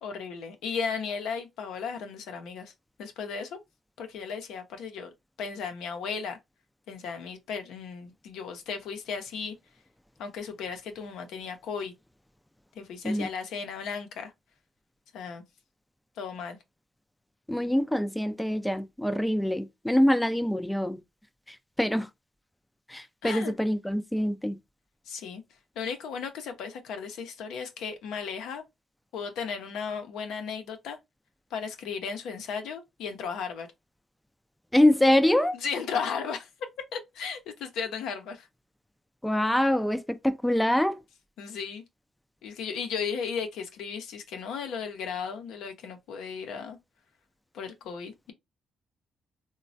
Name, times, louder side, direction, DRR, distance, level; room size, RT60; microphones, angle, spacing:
voice 1, 0.0-2.7 3.0-3.6 4.0-5.1 5.4-6.4 6.9-9.5 10.2-11.9 12.7-14.3 15.1-15.4 16.2-16.6 23.2-23.5 25.1-25.4 25.8-28.6 29.1-31.0 31.5-33.7 35.5-36.5 36.9-38.5 41.4-41.8 42.4-46.8 47.5-48.3, left 6 dB, 85° left, 0.6 m, -35 dB
voice 2, 17.5-21.0 21.5-22.1 22.9-24.6 34.7-35.5 39.2-41.0, left 1 dB, 5° left, 0.4 m, -25 dB
3.1 x 2.2 x 2.6 m
cardioid pair, 90°, 0 cm